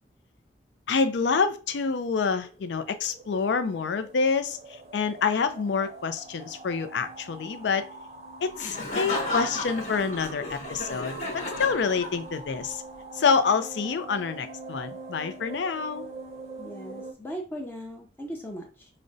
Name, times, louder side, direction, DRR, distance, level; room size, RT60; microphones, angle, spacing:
voice 1, 0.9-7.9 8.4-12.8 13.1-16.1, left 5 dB, 80° left, 10 dB, 0.4 m, -27 dB
sound 1, 2.5-17.1, right 2 dB, 35° right, 0.5 m, -43 dB
Laughter, 8.6-12.5, left 1 dB, 40° left, 1.0 m, -33 dB
voice 2, 16.6-18.9, equal, 10° left, 0 dB, 0.5 m, -38 dB
4.9 x 2.1 x 2.6 m, 0.35 s
head